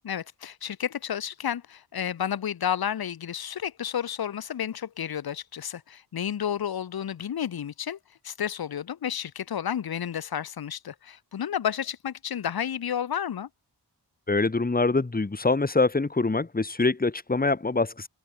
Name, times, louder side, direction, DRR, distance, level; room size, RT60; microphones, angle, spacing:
voice 1, 0.0-8.0 8.2-13.5, left 9 dB, 60° left, 0.7 m, -31 dB
voice 2, 14.3-18.1, left 3 dB, 20° left, 1.1 m, -24 dB
wide cardioid pair, 90°, 41 cm